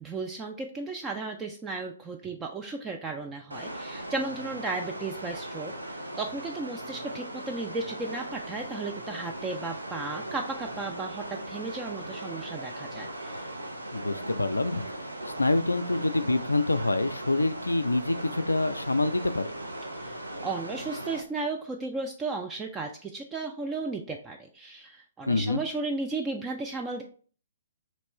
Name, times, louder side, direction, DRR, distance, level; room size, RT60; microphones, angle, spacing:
voice 1, 0.0-13.5 19.9-20.2 20.4-27.0, right 3 dB, 15° right, 2 dB, 0.3 m, -35 dB
sound 1, 3.5-21.2, right 1 dB, 80° right, 0.6 m, -38 dB
voice 2, 13.9-19.5 25.3-25.6, left 2 dB, 80° left, 11 dB, 0.3 m, -26 dB
3.1 x 2.9 x 4.3 m, 0.43 s
figure-of-eight pair, 120°, 0 cm